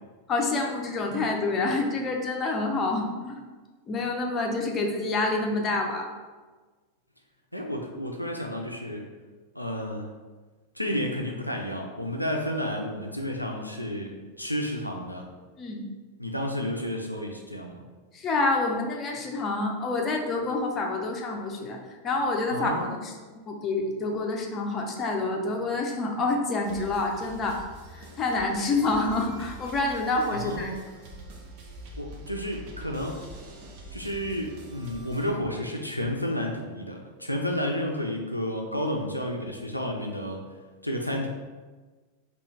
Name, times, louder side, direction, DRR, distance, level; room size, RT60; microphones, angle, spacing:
voice 1, 0.3-3.4 3.9-6.1 15.6-15.8 18.1-21.8 22.0-23.1 23.5-27.6 27.9-30.7, left 3 dB, 25° left, 1 dB, 0.5 m, -27 dB
voice 2, 7.5-9.1 9.5-10.1 10.7-14.1 14.4-15.2 16.2-17.8 22.5-23.0 30.3-30.9 32.0-33.2 33.9-40.4 40.8-41.3, equal, 90° left, 1 dB, 0.3 m, -31 dB
sound 1, 26.6-35.3, right 1 dB, 45° right, 0.6 m, -44 dB
3.7 x 2.4 x 3.0 m, 1.3 s
figure-of-eight pair, 90°, 0 cm